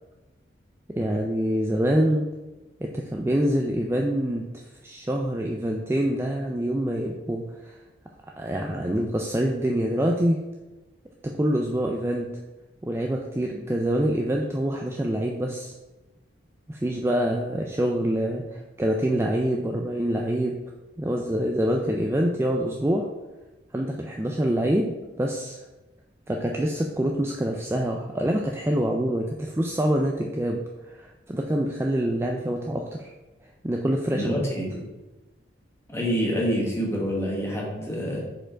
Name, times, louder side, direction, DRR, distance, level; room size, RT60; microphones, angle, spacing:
voice 1, 0.9-2.3 2.8-7.8 8.4-10.4 11.2-12.3 12.8-15.7 16.7-20.6 21.0-23.1 23.7-25.6 26.3-33.1 33.6-34.4, right 1 dB, 15° right, 1 dB, 0.3 m, -26 dB
voice 2, 34.1-34.8 35.9-38.2, equal, 15° left, -3 dB, 1.3 m, -27 dB
4.9 x 4.5 x 4.4 m, 1.1 s
head